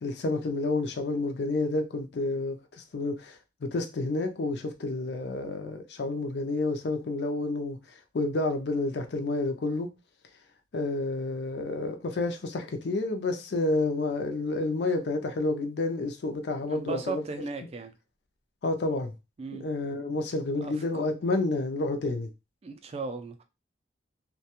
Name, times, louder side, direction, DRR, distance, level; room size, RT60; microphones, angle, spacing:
voice 1, 0.0-2.6 2.9-7.8 8.1-9.9 10.7-17.2 18.6-19.2 19.6-22.3, left 2 dB, 60° left, 0.4 m, -29 dB
voice 2, 16.6-17.9 19.4-19.7 20.6-21.0 22.6-23.4, right 4 dB, 35° right, 0.3 m, -36 dB
2.3 x 2.1 x 2.8 m
head